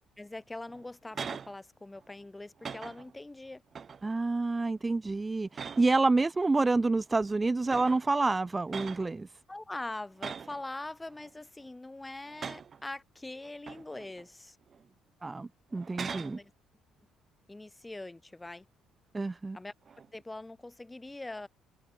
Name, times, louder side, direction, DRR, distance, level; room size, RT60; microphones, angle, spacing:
voice 1, 0.2-3.6 9.5-14.6 16.0-16.5 17.5-18.6 19.5-19.7 20.1-21.5, left 2 dB, 15° left, 6.6 m, -43 dB
sound 1, 0.7-1.5 1.9-2.2 2.6-3.2 3.7-4.1 4.6-4.9 5.5-6.1 7.1-7.2 7.7-8.1 8.7-9.1 10.2-10.6 11.1-11.7 12.2-12.8 13.4-14.2 14.7-14.9 15.7-16.4 19.8-20.2, right 6 dB, 40° right, 1.0 m, -42 dB
voice 2, 4.0-9.3 15.2-16.4 19.1-19.6, right 3 dB, 20° right, 0.4 m, -28 dB
figure-of-eight pair, 50°, 0 cm